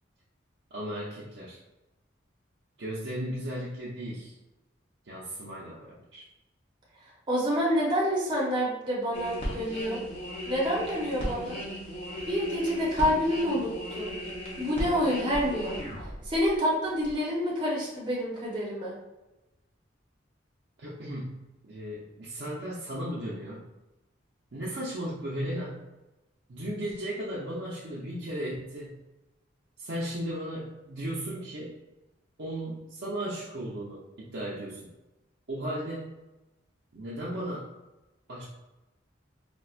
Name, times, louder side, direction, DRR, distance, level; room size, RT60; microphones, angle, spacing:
voice 1, 0.7-1.6 2.8-4.3 5.0-6.3 20.8-23.6 24.5-25.8 26.5-29.0 29.8-31.8 32.4-34.9 35.5-36.2 36.9-37.7 38.3-38.4, right 1 dB, 65° right, -7 dB, 0.6 m, -36 dB
voice 2, 7.3-10.0 10.5-11.6 12.3-14.1 14.6-15.8 16.2-18.9, equal, 25° right, -5 dB, 0.7 m, -28 dB
sound 1, 9.1-16.6 17.0-17.1, equal, 30° left, 0.7 m, -36 dB
4.2 x 2.3 x 2.4 m, 1.0 s
head